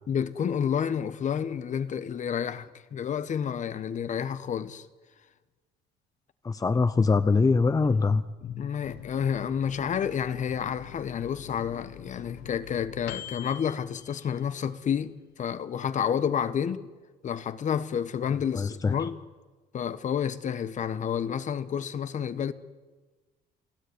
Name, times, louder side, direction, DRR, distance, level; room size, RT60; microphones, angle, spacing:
voice 1, 0.1-4.9 8.4-16.9 17.2-19.2 19.7-22.5, left 8 dB, 45° left, 1.4 m, -30 dB
voice 2, 6.4-8.2 18.5-19.0, left 4 dB, 20° left, 0.7 m, -23 dB
Microwave oven, 8.8-14.9 15.3-15.4 15.7-16.3, left 11 dB, 80° left, 1.6 m, -45 dB
29.0 x 17.0 x 9.7 m
cardioid pair, 110°, 17 cm